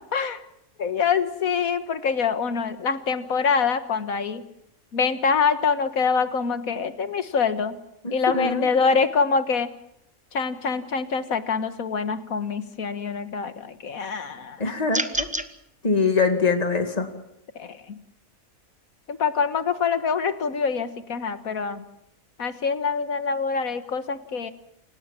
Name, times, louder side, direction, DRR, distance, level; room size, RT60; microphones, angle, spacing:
voice 1, 0.1-0.4 0.8-4.4 4.9-7.8 8.1-9.7 10.3-14.8 17.6-18.0 19.1-21.8 22.4-24.5, left 5 dB, 80° left, 11 dB, 1.9 m, -25 dB
voice 2, 8.0-8.7 14.6-15.3 15.8-17.1, left 4 dB, 30° left, 6 dB, 2.3 m, -23 dB
sound 1, 14.9-15.5, right 1 dB, 5° right, 0.9 m, -27 dB
29.0 x 17.5 x 7.5 m, 0.79 s
omnidirectional pair, 1.5 m